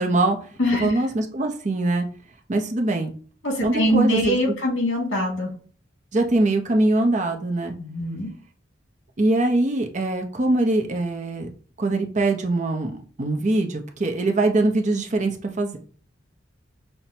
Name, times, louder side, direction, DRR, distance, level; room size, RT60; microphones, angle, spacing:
voice 1, 0.0-2.1 2.5-3.1 3.6-4.4 6.1-7.7 9.2-11.5 11.8-15.8, right 2 dB, 35° right, 4 dB, 0.5 m, -23 dB
voice 2, 0.6-0.9 3.4-5.5 7.8-8.3, equal, 80° left, -1 dB, 1.9 m, -23 dB
5.7 x 2.1 x 2.6 m, 0.42 s
head